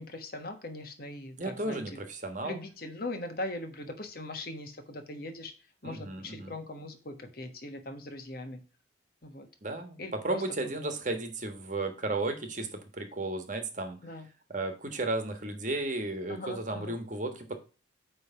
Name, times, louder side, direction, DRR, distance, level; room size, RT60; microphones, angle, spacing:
voice 1, 0.0-2.0 2.4-5.5 5.8-8.6 9.2-9.5 10.0-10.7 14.0-14.3 16.3-17.0, left 1 dB, 50° left, 6 dB, 1.3 m, -40 dB
voice 2, 1.4-2.6 5.8-6.5 9.6-14.0 14.5-17.5, right 2 dB, 40° right, 6 dB, 1.3 m, -34 dB
9.5 x 3.4 x 5.6 m, 0.35 s
head